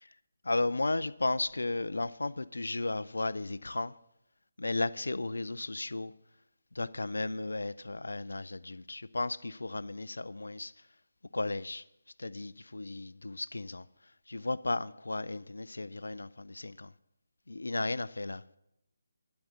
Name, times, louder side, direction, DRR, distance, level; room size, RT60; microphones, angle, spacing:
voice 1, 0.4-3.9 4.6-6.1 6.8-10.7 11.3-11.8 12.2-13.8 14.3-16.9 17.5-18.4, left 2 dB, 80° left, 0.4 m, -34 dB
12.0 x 8.1 x 6.2 m
figure-of-eight pair, 150°, 0 cm